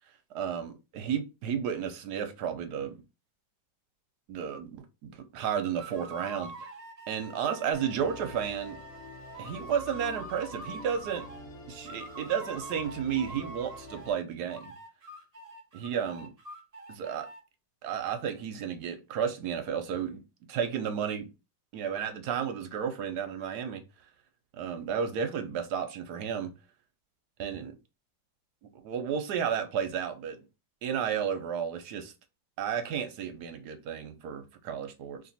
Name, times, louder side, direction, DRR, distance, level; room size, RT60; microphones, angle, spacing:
voice 1, 0.3-3.0 4.3-6.5 7.1-8.8 9.4-11.2 11.7-14.7 15.7-16.3 16.9-17.3 17.8-20.2 20.5-21.3 21.7-23.8 24.6-26.5 27.4-27.7 28.7-30.4 30.8-32.1 32.6-35.2, right 8 dB, 65° right, 1.1 m, -32 dB
sound 1, 5.8-11.5 11.8-14.2 14.5-17.4, right 2 dB, 50° right, 0.4 m, -45 dB
Musical instrument, 7.7-14.1, left 1 dB, 55° left, 1.5 m, -47 dB
3.0 x 2.9 x 4.0 m
omnidirectional pair, 2.1 m